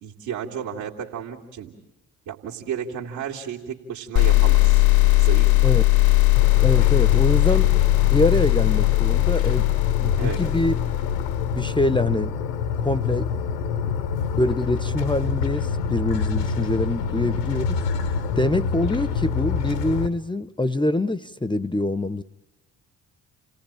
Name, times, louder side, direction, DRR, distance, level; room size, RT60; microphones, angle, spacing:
voice 1, 0.0-1.7 2.3-4.8 5.2-5.9 10.2-10.4, right 8 dB, 65° right, -3 dB, 2.3 m, -33 dB
sound 1, 4.2-11.7, left 22 dB, 50° left, 1.0 m, -19 dB
sound 2, 6.4-20.1, left 6 dB, 75° left, 1.3 m, -27 dB
voice 2, 6.6-7.7 8.1-9.7 10.0-10.8 11.5-12.4 12.8-13.4 14.3-17.8 18.4-22.2, left 2 dB, 10° left, 17 dB, 0.8 m, -24 dB
29.0 x 18.0 x 8.8 m, 1.0 s
figure-of-eight pair, 40°, 49 cm